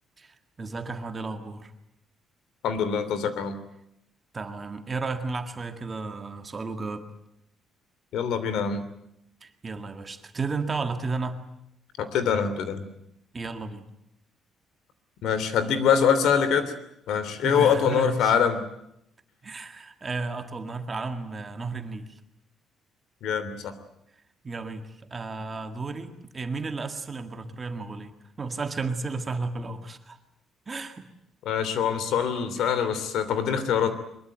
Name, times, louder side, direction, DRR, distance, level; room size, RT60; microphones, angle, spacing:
voice 1, 0.2-1.7 4.3-7.1 9.4-11.4 13.3-13.8 17.4-18.3 19.4-22.2 24.4-30.2 30.7-31.1 32.6-32.7, right 3 dB, 20° right, 6 dB, 1.9 m, -33 dB
voice 2, 2.6-3.6 8.1-8.8 12.0-12.9 15.2-16.7 17.1-18.6 23.2-23.7 31.4-33.9, left 7 dB, 70° left, 12 dB, 3.1 m, -24 dB
23.5 x 22.5 x 9.0 m, 0.80 s
cardioid pair, 175°, 0 cm